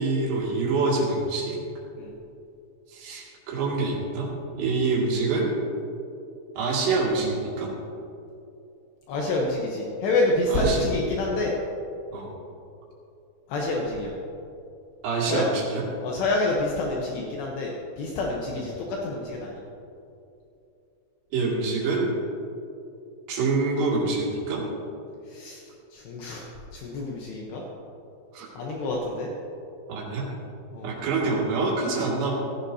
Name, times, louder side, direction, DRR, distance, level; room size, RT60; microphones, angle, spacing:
voice 1, 0.0-1.6 2.9-4.3 4.5-5.5 6.6-7.7 10.5-10.9 12.1-12.3 15.0-15.8 18.5-18.6 21.3-22.1 23.3-24.6 28.3-28.5 29.9-30.3 30.8-32.3, right 3 dB, 65° right, -4 dB, 4.2 m, -26 dB
voice 2, 9.1-11.5 13.5-14.1 15.3-15.4 16.0-19.5 25.3-25.6 25.9-26.4 26.7-27.6 28.6-29.3 30.7-30.9, left 2 dB, 70° left, -2 dB, 3.0 m, -27 dB
15.5 x 15.5 x 2.8 m, 2.7 s
omnidirectional pair, 5.4 m